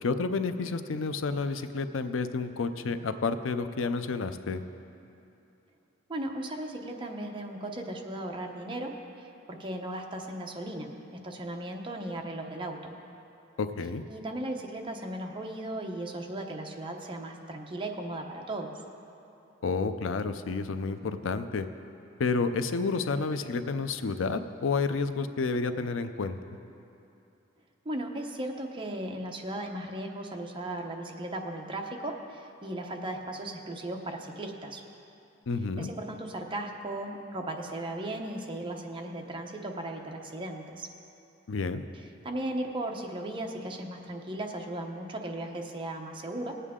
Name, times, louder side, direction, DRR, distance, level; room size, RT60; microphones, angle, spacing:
voice 1, 0.0-4.6 13.6-14.0 19.6-21.7 22.2-26.4 35.5-35.9 41.5-41.9, left 4 dB, 75° left, 10 dB, 0.5 m, -30 dB
voice 2, 6.1-12.9 14.1-18.7 27.8-34.8 35.8-40.9 42.2-46.5, right 1 dB, 25° right, 2 dB, 0.9 m, -36 dB
19.5 x 8.3 x 3.7 m, 2.8 s
head